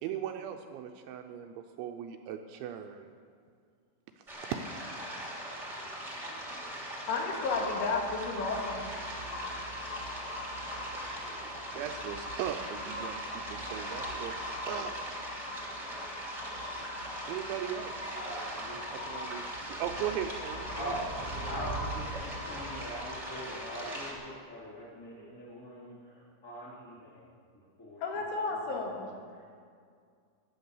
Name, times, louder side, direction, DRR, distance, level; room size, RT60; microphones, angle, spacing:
voice 1, 0.0-3.1 4.2-4.6 10.9-15.0 17.3-18.1 18.9-20.9, right 9 dB, 80° right, 5 dB, 2.8 m, -39 dB
sound 1, 4.3-24.1, right 1 dB, 15° right, 1.2 m, -41 dB
voice 2, 7.1-8.9 28.0-29.1, left 3 dB, 75° left, 0 dB, 4.2 m, -32 dB
sound 2, 7.3-24.4, left 1 dB, 55° left, 2.0 m, -42 dB
voice 3, 18.1-18.8 19.8-19.9 20.8-27.3 27.5-28.2 28.8-29.4, equal, 20° left, -10 dB, 2.4 m, -43 dB
15.0 x 10.5 x 7.1 m, 2.2 s
omnidirectional pair, 5.7 m